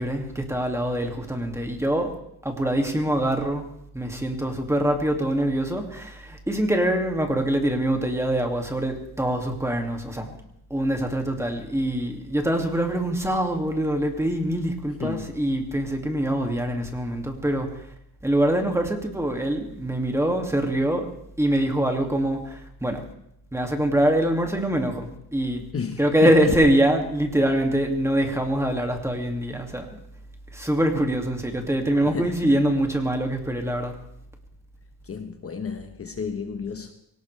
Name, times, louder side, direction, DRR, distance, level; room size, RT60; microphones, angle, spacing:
voice 1, 0.0-2.1 2.4-3.7 3.9-10.4 10.7-17.9 18.2-21.1 21.4-23.0 23.5-25.7 26.0-30.0 30.5-34.0, right 1 dB, 5° right, 2.3 m, -24 dB
voice 2, 15.0-15.3 25.7-26.5 32.0-32.6 35.0-36.9, left 6 dB, 35° left, 1.2 m, -32 dB
23.0 x 18.0 x 3.3 m
cardioid pair, 120°, 39 cm